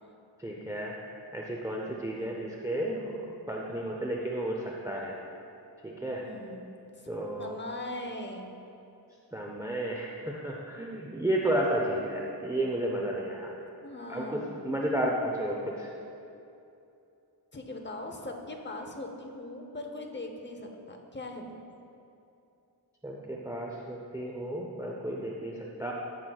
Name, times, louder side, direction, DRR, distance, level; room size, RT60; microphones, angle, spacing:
voice 1, 0.4-5.2 5.8-6.3 7.1-7.5 9.3-13.5 14.1-15.9 23.0-25.9, right 1 dB, 10° right, -2 dB, 0.6 m, -32 dB
voice 2, 2.0-2.4 6.1-6.7 7.4-8.6 13.8-14.7 17.5-21.6, left 1 dB, 25° left, 3 dB, 0.8 m, -40 dB
13.0 x 6.1 x 2.3 m, 2.7 s
wide cardioid pair, 70°, 42 cm